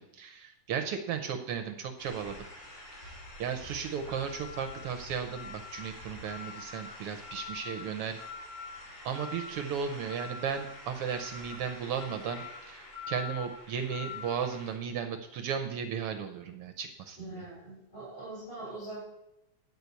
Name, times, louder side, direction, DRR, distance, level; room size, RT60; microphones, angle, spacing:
voice 1, 0.0-2.5 2.9-8.2 9.0-17.5, right 7 dB, 75° right, 6 dB, 1.3 m, -35 dB
sound 1, 2.0-14.7, left 4 dB, 80° left, 6.3 m, -45 dB
voice 2, 17.2-19.0, right 2 dB, 50° left, -9 dB, 6.0 m, -42 dB
11.0 x 4.6 x 8.2 m, 0.92 s
omnidirectional pair, 3.5 m